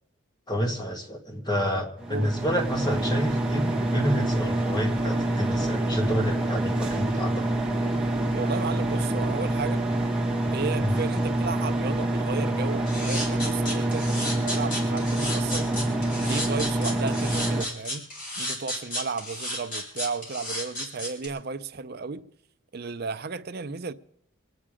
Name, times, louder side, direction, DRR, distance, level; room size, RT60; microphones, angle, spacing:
voice 1, 0.5-7.4 10.8-10.9, equal, 20° left, 1.7 m, -29 dB
sound 1, 2.0-17.6, right 1 dB, 5° right, 1.3 m, -26 dB
voice 2, 8.3-9.8 10.5-15.7 16.2-18.1 18.4-22.2 22.7-23.9, right 4 dB, 50° right, 0.6 m, -34 dB
sound 2, 12.9-21.3, left 1 dB, 40° left, 4.0 m, -32 dB
25.0 x 9.2 x 5.0 m
head